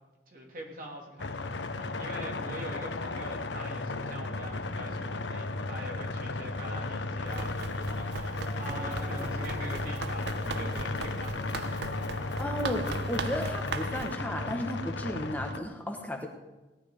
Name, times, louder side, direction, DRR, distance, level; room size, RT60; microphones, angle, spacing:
voice 1, 0.3-11.8, right 1 dB, 50° right, -1 dB, 3.3 m, -44 dB
sound 1, 1.2-15.6, left 2 dB, 85° left, 1.0 m, -34 dB
Run, 7.2-14.2, right 6 dB, 70° right, 0.5 m, -41 dB
sound 2, 7.9-13.4, right 1 dB, 25° right, 2.7 m, -46 dB
voice 2, 12.4-16.3, equal, 10° left, 2 dB, 1.3 m, -34 dB
18.0 x 11.0 x 5.1 m, 1.1 s
head